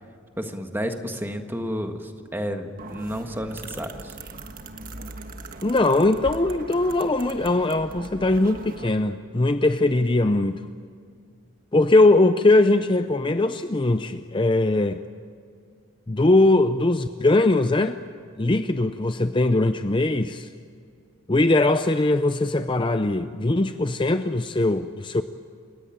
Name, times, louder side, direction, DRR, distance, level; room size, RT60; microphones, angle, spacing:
voice 1, 0.4-4.1, equal, 10° right, 5 dB, 1.6 m, -31 dB
sound 1, 2.8-8.9, right 2 dB, 40° right, 1.5 m, -40 dB
voice 2, 5.6-10.6 11.7-15.0 16.1-18.0 18.4-20.5 21.3-25.2, left 2 dB, 25° left, 9 dB, 0.5 m, -20 dB
29.0 x 17.0 x 8.8 m, 2.3 s
head